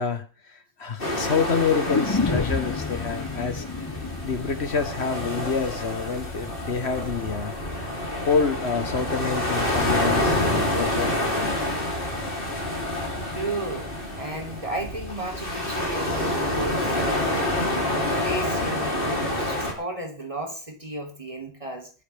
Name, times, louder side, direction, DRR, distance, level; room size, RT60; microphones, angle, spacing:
voice 1, 0.0-3.7 4.2-7.5 8.3-11.6, left 5 dB, 65° left, 10 dB, 1.5 m, -27 dB
sound 1, 1.0-19.7, left 1 dB, 45° left, 3.8 m, -28 dB
sound 2, 1.9-5.9 6.2-6.3, left 4 dB, 25° left, 0.5 m, -29 dB
voice 2, 13.4-17.6 17.9-21.9, right 1 dB, 30° right, 2 dB, 3.4 m, -33 dB
21.5 x 10.5 x 3.5 m, 0.34 s
omnidirectional pair, 1.2 m